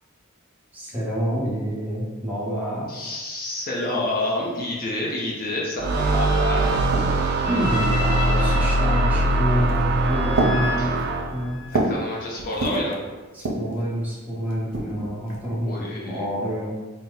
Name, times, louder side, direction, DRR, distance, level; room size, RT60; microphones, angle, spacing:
voice 1, 0.7-3.2 7.4-11.0 11.3-11.6 13.3-16.8, equal, 10° right, -7 dB, 1.0 m, -28 dB
voice 2, 2.9-6.6 10.8-10.9 11.7-13.0 15.6-16.3, left 1 dB, 45° left, -3 dB, 0.6 m, -28 dB
sound 1, 5.7-11.8, left 3 dB, 85° left, 0.7 m, -34 dB
sound 2, 5.8-11.5, right 2 dB, 50° right, 0.3 m, -22 dB
sound 3, 6.6-7.4 8.2-8.7 9.5-9.9 10.3-12.1 12.4-12.9 13.3-13.8 14.5-15.5, right 2 dB, 75° right, 0.7 m, -28 dB
4.2 x 2.1 x 3.9 m, 1.2 s
head